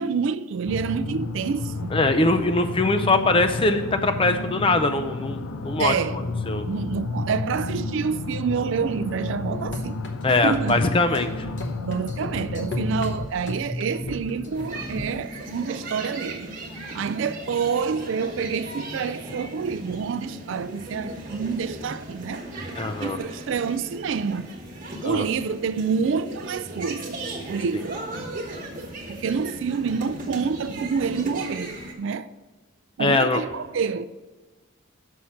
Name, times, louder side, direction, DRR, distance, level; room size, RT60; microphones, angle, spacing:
voice 1, 0.0-1.9 5.8-6.2 6.6-10.0 10.4-10.8 11.8-16.5 16.9-22.4 23.0-24.4 25.0-27.2 27.5-28.0 29.1-32.3 33.0-34.1, right 5 dB, 65° right, 0.3 m, -27 dB
sound 1, 0.7-13.3, left 2 dB, 80° left, 0.5 m, -32 dB
voice 2, 1.9-5.9 6.5-6.6 10.2-11.5 22.8-23.2 25.0-25.2 33.0-33.4, left 2 dB, 25° left, 0.5 m, -22 dB
sound 2, 9.5-15.1, left 1 dB, 60° left, 0.9 m, -35 dB
sound 3, 14.5-31.9, right 2 dB, 40° right, 1.3 m, -37 dB
6.4 x 5.7 x 7.1 m
head